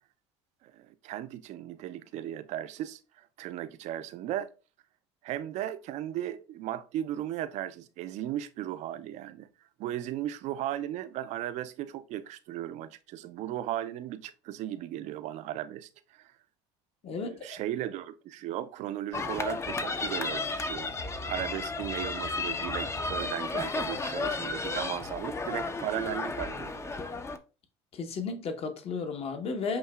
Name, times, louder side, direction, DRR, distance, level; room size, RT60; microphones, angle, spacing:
voice 1, 0.6-4.5 5.2-9.5 9.8-16.3 17.1-20.9 21.3-26.9, right 12 dB, 55° right, 0.5 m, -36 dB
voice 2, 17.0-17.6 27.9-29.8, left 4 dB, 45° left, 1.0 m, -34 dB
sound 1, 19.1-27.4, left 3 dB, 20° left, 0.6 m, -33 dB
8.0 x 2.8 x 2.3 m
hypercardioid pair, 75°, 14 cm